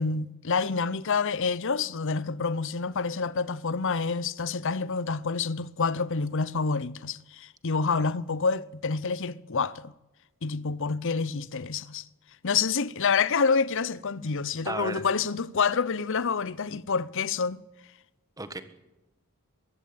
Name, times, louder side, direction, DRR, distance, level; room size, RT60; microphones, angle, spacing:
voice 1, 0.0-9.9 10.4-12.0 12.4-17.6, left 5 dB, 60° left, 0.7 m, -28 dB
voice 2, 14.6-15.0 18.4-18.6, right 2 dB, 15° right, 1.4 m, -35 dB
23.0 x 15.0 x 8.8 m
head